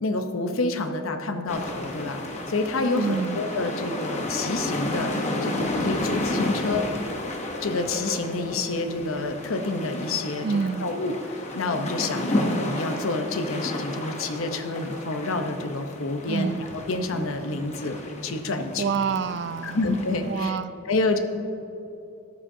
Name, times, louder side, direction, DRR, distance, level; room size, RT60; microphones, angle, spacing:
voice 1, 0.0-5.2 5.4-6.8 7.6-16.5 16.9-18.0 18.2-18.8 19.6-20.6 20.9-21.2, left 2 dB, 80° left, 7 dB, 0.8 m, -28 dB
sound 1, 1.5-20.4, left 1 dB, 35° left, 0.8 m, -32 dB
voice 2, 2.9-3.4 10.4-10.9 16.2-16.7 18.8-19.9 20.2-20.8, right 5 dB, 55° right, 13 dB, 0.3 m, -27 dB
14.0 x 9.9 x 2.7 m, 2.9 s
head